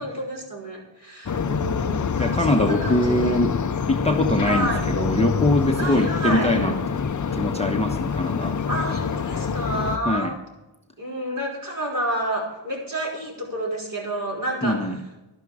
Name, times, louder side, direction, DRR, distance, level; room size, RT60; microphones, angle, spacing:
voice 1, 0.0-3.4 4.4-4.8 5.8-6.6 8.7-10.4 11.0-14.9, right 1 dB, 40° right, -3 dB, 5.2 m, -29 dB
sound 1, 1.3-10.0, left 6 dB, 40° left, 0.7 m, -26 dB
voice 2, 2.2-3.5 3.9-7.0 7.3-8.5 10.1-10.3 14.6-15.0, left 1 dB, 15° left, 2 dB, 1.0 m, -23 dB
12.5 x 11.5 x 5.0 m, 1.0 s
wide cardioid pair, 105°, 48 cm